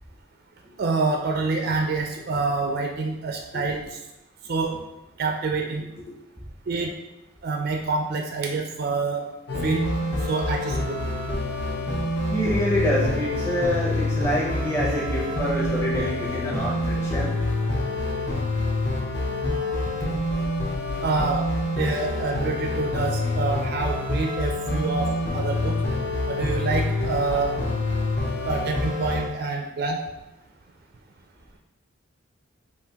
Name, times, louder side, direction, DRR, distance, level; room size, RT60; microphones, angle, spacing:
voice 1, 0.8-4.0 4.4-4.8 5.2-5.9 6.7-6.9 7.4-9.3 9.6-9.8 10.2-11.0 21.0-21.4 21.8-25.8 26.3-27.6 28.4-30.0, right 3 dB, 50° right, 2 dB, 0.3 m, -27 dB
sound 1, 9.5-29.3, left 2 dB, 55° left, 0.7 m, -27 dB
voice 2, 12.3-17.4, equal, 15° left, -5 dB, 0.6 m, -26 dB
5.4 x 2.5 x 2.9 m, 0.93 s
head